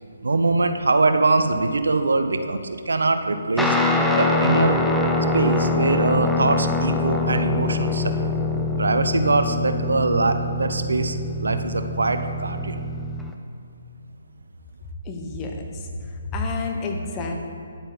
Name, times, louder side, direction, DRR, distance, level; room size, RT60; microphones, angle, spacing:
voice 1, 0.2-3.8 4.2-4.8 5.3-8.3 8.8-12.8, right 3 dB, 75° right, 9 dB, 0.6 m, -22 dB
Guitar, 3.6-13.3, left 2 dB, ahead, 0.6 m, -24 dB
voice 2, 15.0-17.3, left 3 dB, 20° left, 2 dB, 1.0 m, -30 dB
9.8 x 7.8 x 4.0 m, 2.4 s
figure-of-eight pair, 140°, 0 cm